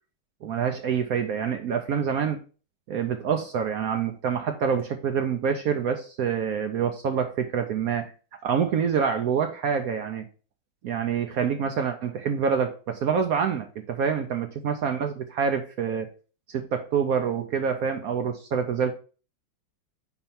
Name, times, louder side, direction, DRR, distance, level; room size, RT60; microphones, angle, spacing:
voice 1, 0.4-2.4 2.9-8.1 8.4-10.2 10.8-16.1 16.5-18.9, right 7 dB, 75° right, 6 dB, 0.8 m, -26 dB
4.4 x 4.4 x 5.4 m, 0.38 s
omnidirectional pair, 2.1 m